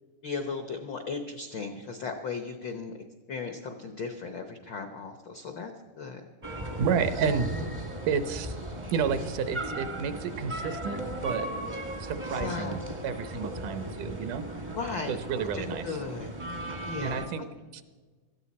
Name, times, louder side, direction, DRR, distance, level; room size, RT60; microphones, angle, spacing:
voice 1, 0.2-2.9 3.3-5.7 6.0-6.2 12.4-12.8 14.7-15.1 15.5-16.3 16.8-17.2, left 4 dB, 75° left, 6 dB, 1.0 m, -36 dB
sound 1, 6.4-17.3, right 1 dB, 30° right, 0.5 m, -36 dB
voice 2, 6.8-7.5 8.1-8.6 8.9-11.5 12.0-14.4 15.1-16.0 17.0-17.4 17.7-17.8, right 6 dB, 85° right, 10 dB, 2.4 m, -30 dB
18.0 x 13.5 x 4.2 m, 1.4 s
omnidirectional pair, 3.5 m